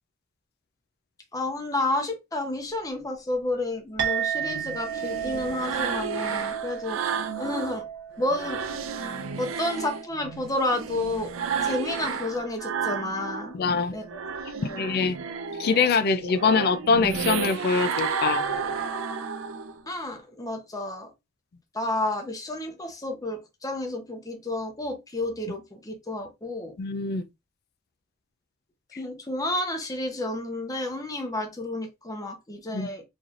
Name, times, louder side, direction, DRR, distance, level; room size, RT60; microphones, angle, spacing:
voice 1, 1.3-7.0 7.4-7.9 8.2-8.6 9.0-9.1 9.4-11.3 11.6-13.5 13.9-14.0 14.5-14.8 19.9-21.1 21.7-26.7 29.0-33.0, left 2 dB, 20° left, 0.7 m, -31 dB
Chink clink, 4.0-12.7, right 8 dB, 65° right, 1.1 m, -35 dB
sound 1, 4.4-7.8 8.2-13.6 13.9-19.8, right 6 dB, 85° right, 0.5 m, -32 dB
voice 2, 13.5-13.9 14.8-15.2 15.6-18.7 26.8-27.2 32.7-32.9, left 5 dB, 50° left, 0.4 m, -24 dB
4.0 x 3.2 x 2.4 m
head